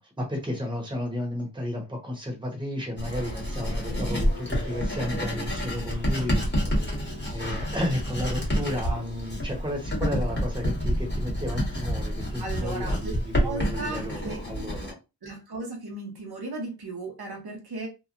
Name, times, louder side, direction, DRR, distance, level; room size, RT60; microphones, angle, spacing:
voice 1, 0.2-6.4 7.3-15.0, left 1 dB, 10° right, 0.9 m, -32 dB
Writing, 3.0-14.9, equal, 25° left, 1.3 m, -29 dB
voice 2, 12.4-13.1 13.4-14.4 15.2-17.9, right 2 dB, 65° right, 0.9 m, -36 dB
2.9 x 2.2 x 2.4 m
wide cardioid pair, 70°, 40 cm